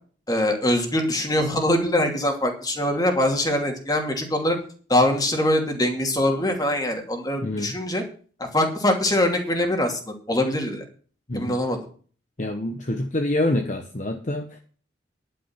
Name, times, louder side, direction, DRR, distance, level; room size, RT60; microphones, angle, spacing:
voice 1, 0.3-4.6 4.9-8.0 8.4-10.8 11.3-11.8, left 1 dB, 20° left, 3 dB, 2.6 m, -23 dB
voice 2, 7.4-7.8 11.3-11.6 12.4-14.6, left 1 dB, 40° left, 5 dB, 1.1 m, -26 dB
11.0 x 9.2 x 5.8 m, 0.42 s
head